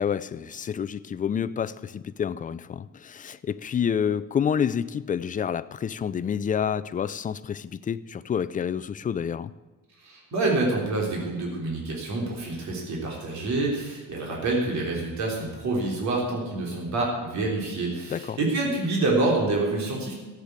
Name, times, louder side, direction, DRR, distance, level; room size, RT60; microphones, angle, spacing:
voice 1, 0.0-9.5 18.1-18.4, left 8 dB, 25° left, 15 dB, 0.4 m, -28 dB
voice 2, 10.0-20.1, right 2 dB, 55° right, -1 dB, 3.7 m, -27 dB
13.5 x 8.2 x 8.3 m, 1.3 s
cardioid pair, 150°, 34 cm